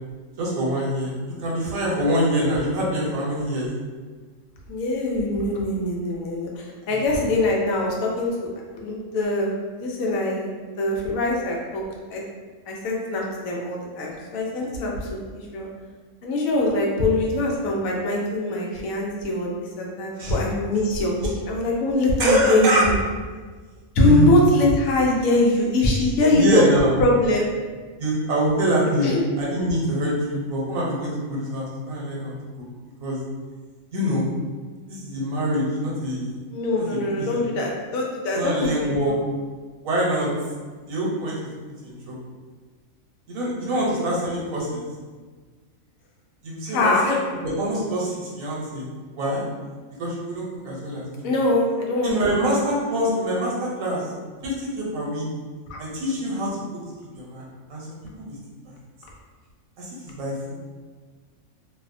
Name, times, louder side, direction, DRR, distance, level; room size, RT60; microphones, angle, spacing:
voice 1, 0.4-1.1 1.4-3.7 6.9-7.0 20.2-20.4 22.2-22.8 24.0-24.4 26.3-26.9 28.0-29.1 29.4-32.3 33.0-33.2 33.9-34.3 34.9-36.4 36.8-37.3 38.3-39.1 39.8-40.3 40.8-41.5 41.8-42.2 43.3-44.8 46.4-47.1 47.4-48.9 49.1-49.4 50.0-51.3 52.0-54.1 54.4-55.2 55.8-56.6 57.1-57.4 57.7-57.9 58.2-58.3 59.8-60.5, equal, 80° right, -4 dB, 1.1 m, -25 dB
voice 2, 4.7-8.5 8.7-9.5 9.8-10.5 10.8-11.8 12.1-12.2 12.7-15.7 16.2-19.5 19.8-22.9 24.0-26.7 27.0-27.5 29.0-29.2 36.5-38.9 43.9-44.1 46.7-47.1 51.2-52.5 55.7-55.8, left 2 dB, 80° left, -2 dB, 1.0 m, -23 dB
2.7 x 2.0 x 2.5 m, 1.4 s
omnidirectional pair, 1.4 m